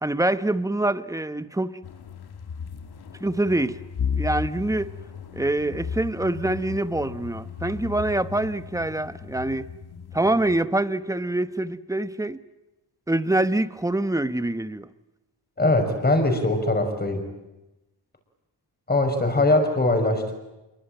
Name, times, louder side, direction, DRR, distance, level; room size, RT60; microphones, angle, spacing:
voice 1, 0.0-1.8 3.2-3.8 4.1-4.9 5.3-9.7 10.1-12.4 13.1-14.9, right 2 dB, 10° right, 0.9 m, -25 dB
sound 1, 1.8-10.6, left 6 dB, 60° left, 1.8 m, -35 dB
voice 2, 15.6-17.2 18.9-20.3, left 2 dB, 20° left, 5.8 m, -21 dB
27.5 x 23.5 x 9.1 m
wide cardioid pair, 140°, 42 cm